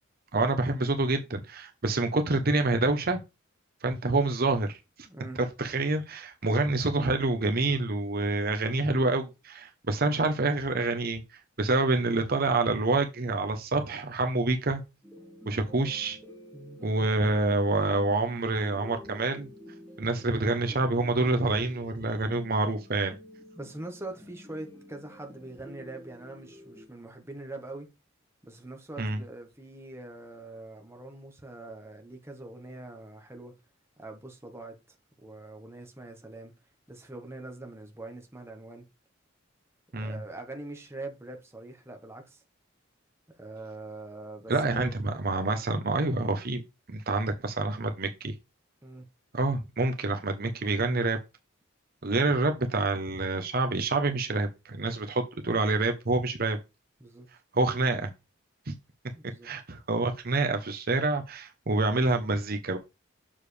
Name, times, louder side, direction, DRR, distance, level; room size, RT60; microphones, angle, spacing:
voice 1, 0.3-3.2 3.8-4.8 5.6-11.2 11.6-14.8 15.5-16.2 16.8-19.5 20.0-23.2 29.0-29.2 39.9-40.2 44.5-46.6 46.9-48.3 49.3-51.2 52.0-56.6 57.5-58.1 58.7-58.8 59.4-62.8, right 2 dB, 50° right, 0.9 m, -27 dB
voice 2, 5.0-5.4 16.5-16.8 23.5-27.9 28.4-33.5 34.0-34.8 35.2-36.5 36.9-38.9 39.9-42.4 43.4-44.9 48.8-49.1 57.0-57.3 59.1-59.5, right 2 dB, 15° right, 1.3 m, -43 dB
sound 1, 15.0-26.9, left 1 dB, 10° left, 1.8 m, -50 dB
7.2 x 6.7 x 3.3 m
head